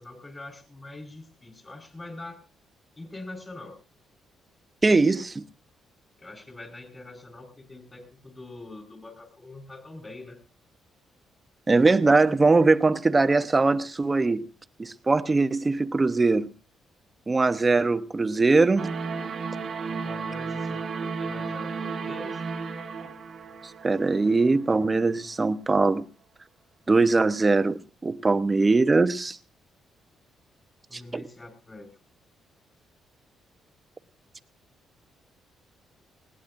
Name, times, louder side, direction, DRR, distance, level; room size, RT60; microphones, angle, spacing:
voice 1, 0.0-2.4 3.0-3.8 6.2-10.4 19.9-22.4 30.9-31.9, left 2 dB, 25° left, 4.5 m, -44 dB
voice 2, 4.8-5.4 11.7-14.5 14.8-16.5 17.3-18.9 23.8-26.0 26.9-29.4 30.9-31.2, right 3 dB, 25° right, 0.9 m, -21 dB
sound 1, 18.8-24.8, right 5 dB, 55° right, 1.4 m, -33 dB
20.5 x 17.5 x 2.6 m
cardioid pair, 90°, 0 cm